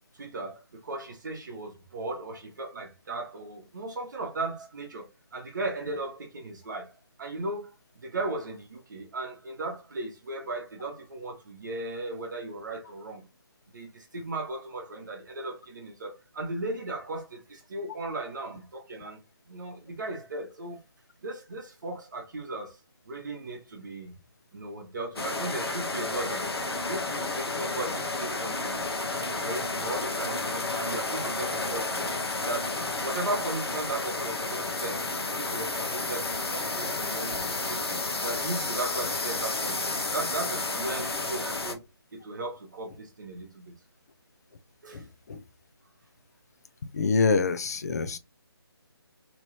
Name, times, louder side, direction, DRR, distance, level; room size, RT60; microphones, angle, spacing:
voice 1, 0.1-6.9 7.2-7.7 8.0-13.2 13.7-19.2 19.5-20.8 21.2-22.8 23.1-24.1 24.5-26.5 26.9-28.8 29.2-32.1 32.5-35.1 35.4-41.8 42.1-43.7 44.8-45.0, right 2 dB, 45° right, 0.9 m, -36 dB
sound 1, 25.2-41.7, left 3 dB, 70° left, 0.8 m, -31 dB
voice 2, 46.9-48.2, left 4 dB, 40° left, 0.4 m, -25 dB
3.0 x 2.6 x 3.0 m
figure-of-eight pair, 155°, 14 cm